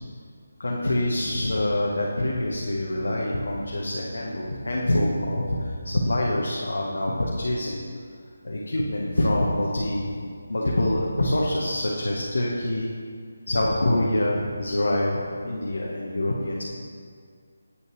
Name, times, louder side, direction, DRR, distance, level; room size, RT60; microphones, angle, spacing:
voice 1, 0.6-7.8 8.4-10.2 10.5-12.9 13.5-16.6, left 1 dB, 90° left, -3 dB, 0.8 m, -25 dB
Bass guitar, 2.9-6.7, right 2 dB, 10° right, 0.6 m, -45 dB
8.1 x 5.4 x 3.1 m, 2.1 s
figure-of-eight pair, 165°, 0 cm